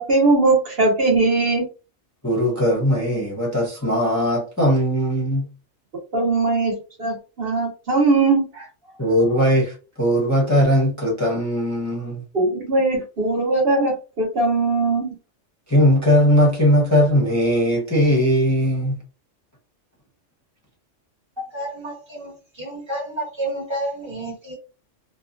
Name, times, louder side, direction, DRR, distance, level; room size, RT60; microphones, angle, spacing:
voice 1, 0.0-1.7 6.1-8.7 12.3-15.1, right 3 dB, 55° right, 1.0 m, -20 dB
voice 2, 2.2-5.5 9.0-12.2 15.7-19.0, equal, 20° left, 0.6 m, -19 dB
voice 3, 21.4-24.5, right 1 dB, 25° right, 1.2 m, -30 dB
2.7 x 2.3 x 2.4 m
omnidirectional pair, 1.2 m